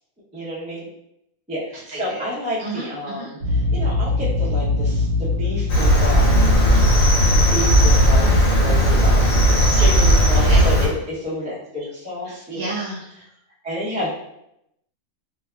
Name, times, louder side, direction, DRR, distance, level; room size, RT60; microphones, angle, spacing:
voice 1, 0.3-0.9 1.5-6.5 7.3-9.3 9.8-12.7 13.6-14.1, equal, 10° right, -8 dB, 0.4 m, -30 dB
voice 2, 1.7-2.3 2.6-3.3 8.7-8.9 10.4-10.7 12.2-13.0, right 2 dB, 50° right, -6 dB, 1.0 m, -32 dB
sound 1, 3.4-8.7, left 4 dB, 80° right, 1.0 m, -23 dB
Cricket, 5.7-10.9, equal, 75° left, 1.1 m, -16 dB
2.6 x 2.3 x 2.2 m, 0.81 s
omnidirectional pair, 1.4 m